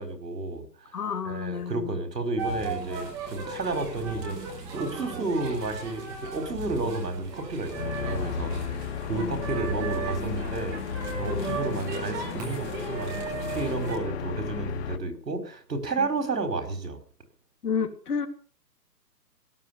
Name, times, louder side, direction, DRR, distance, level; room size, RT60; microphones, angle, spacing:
voice 1, 0.0-1.0 1.2-10.8 11.2-17.0, right 3 dB, 75° right, 6 dB, 4.9 m, -32 dB
voice 2, 0.9-2.0 9.1-9.4 11.2-11.8 16.0-16.1 17.6-18.3, left 6 dB, 65° left, 6 dB, 2.7 m, -31 dB
sound 1, 2.4-14.0, right 3 dB, 5° right, 0.8 m, -35 dB
sound 2, 7.7-15.0, left 8 dB, 40° left, 2.0 m, -35 dB
17.0 x 10.5 x 7.2 m, 0.43 s
hypercardioid pair, 160°, 50 cm